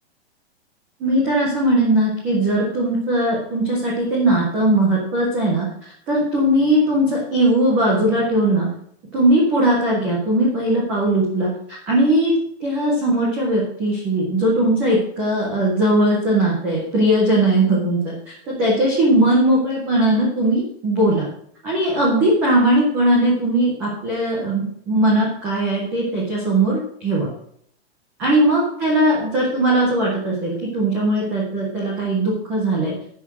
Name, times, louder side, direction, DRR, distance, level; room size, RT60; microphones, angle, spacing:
voice 1, 1.0-5.7 6.1-8.7 9.1-12.3 12.6-21.3 21.6-27.3 28.2-32.9, right 1 dB, 5° right, -5 dB, 0.4 m, -19 dB
10.5 x 5.7 x 5.9 m, 0.67 s
hypercardioid pair, 175°, 33 cm